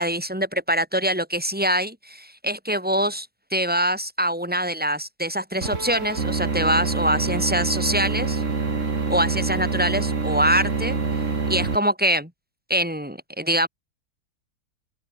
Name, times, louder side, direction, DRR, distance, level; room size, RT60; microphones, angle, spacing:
voice 1, 0.0-8.4 9.1-11.0 11.5-12.3 12.7-13.7, equal, 5° right, 6.4 m, -24 dB
sound 1, 5.6-11.8, right 4 dB, 50° right, 2.9 m, -25 dB
open air
omnidirectional pair, 1.7 m